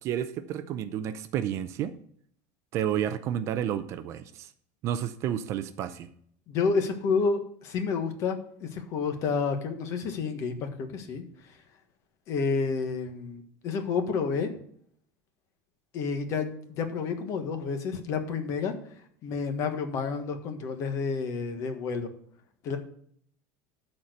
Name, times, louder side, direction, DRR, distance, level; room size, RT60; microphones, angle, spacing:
voice 1, 0.0-1.9 2.7-4.5 4.8-6.1, right 10 dB, 35° right, 12 dB, 0.5 m, -31 dB
voice 2, 6.5-11.2 12.3-14.5 15.9-18.7 19.2-22.1 22.6-22.8, left 5 dB, 40° left, 7 dB, 1.3 m, -30 dB
12.5 x 4.4 x 6.4 m, 0.63 s
cardioid pair, 175°, 8 cm